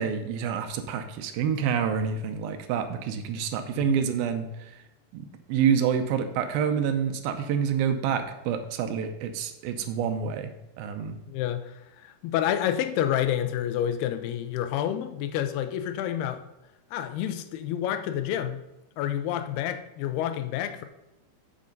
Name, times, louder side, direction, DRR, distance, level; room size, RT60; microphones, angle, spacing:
voice 1, 0.0-4.7 5.1-11.2, right 7 dB, 75° right, 8 dB, 2.4 m, -28 dB
voice 2, 11.3-11.8 12.0-16.4 16.9-18.6 19.0-20.9, left 10 dB, 90° left, 9 dB, 2.7 m, -29 dB
7.7 x 7.6 x 5.3 m, 0.92 s
omnidirectional pair, 4.6 m